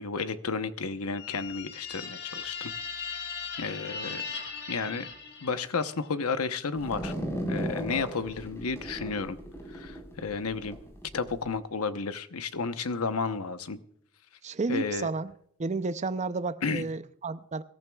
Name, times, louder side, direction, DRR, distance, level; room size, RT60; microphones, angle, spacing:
voice 1, 0.0-2.7 3.1-3.2 3.6-4.2 4.7-5.1 5.4-7.1 7.5-9.4 9.7-10.8 11.1-13.8 14.7-15.1 16.6-16.9, left 4 dB, 85° left, 0.9 m, -32 dB
sound 1, 1.1-5.9, left 5 dB, 55° left, 3.1 m, -38 dB
sound 2, 6.8-11.4, equal, 10° left, 4.3 m, -36 dB
voice 2, 14.4-15.3 15.6-17.6, right 3 dB, 35° right, 0.5 m, -31 dB
24.5 x 14.0 x 2.3 m
head